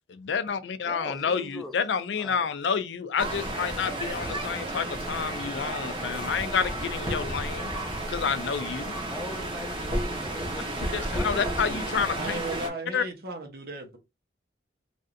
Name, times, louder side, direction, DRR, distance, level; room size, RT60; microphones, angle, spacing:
voice 1, 0.1-7.7 8.1-8.9 10.9-12.4 12.9-13.0, left 6 dB, 85° left, 0.4 m, -29 dB
voice 2, 0.8-1.7 2.2-2.5 9.1-11.9, left 1 dB, ahead, 0.5 m, -40 dB
sound 1, 3.2-12.7, right 1 dB, 30° right, 0.9 m, -32 dB
voice 3, 12.1-14.0, right 2 dB, 60° right, 0.9 m, -36 dB
3.2 x 2.6 x 2.5 m
head